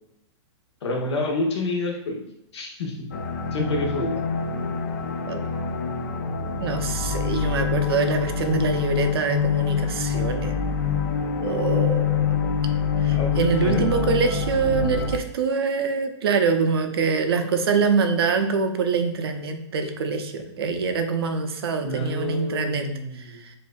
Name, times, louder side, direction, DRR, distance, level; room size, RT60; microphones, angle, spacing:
voice 1, 0.8-2.2 2.5-3.1 3.5-4.2 13.1-13.9 21.8-23.4, left 2 dB, 65° left, 0 dB, 1.2 m, -28 dB
sound 1, 3.1-15.2, left 6 dB, 35° left, 0.4 m, -25 dB
voice 2, 6.6-10.5 11.4-12.5 13.0-22.9 23.1-23.5, right 5 dB, 55° right, 6 dB, 0.5 m, -24 dB
7.0 x 2.7 x 2.3 m, 0.79 s
hypercardioid pair, 175°, 15 cm